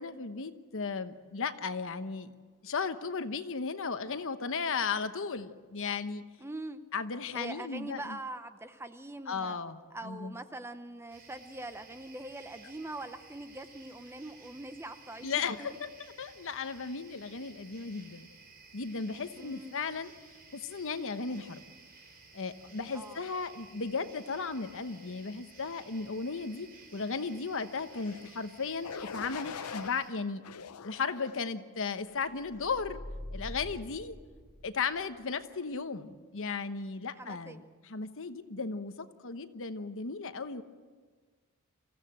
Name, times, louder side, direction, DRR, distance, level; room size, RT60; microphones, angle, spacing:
voice 1, 0.0-2.3 2.6-6.2 6.9-8.2 9.3-10.3 15.2-15.9 16.2-18.3 18.7-20.1 20.5-21.6 22.3-30.4 30.8-33.0 33.3-34.1 34.6-40.6, left 5 dB, 60° left, 10 dB, 1.0 m, -35 dB
voice 2, 6.4-6.8 7.3-9.6 9.9-15.4 19.4-19.8 22.9-23.2 37.2-37.7, right 2 dB, 10° right, 10 dB, 0.7 m, -43 dB
sound 1, 11.1-30.1, right 4 dB, 45° right, 4.5 m, -55 dB
sound 2, 27.9-28.3 28.8-29.9 30.4-31.5 32.1-32.4, left 6 dB, 85° left, 0.6 m, -43 dB
sound 3, 32.4-35.0, left 1 dB, 5° left, 2.4 m, -44 dB
25.0 x 15.5 x 7.6 m, 1.5 s
head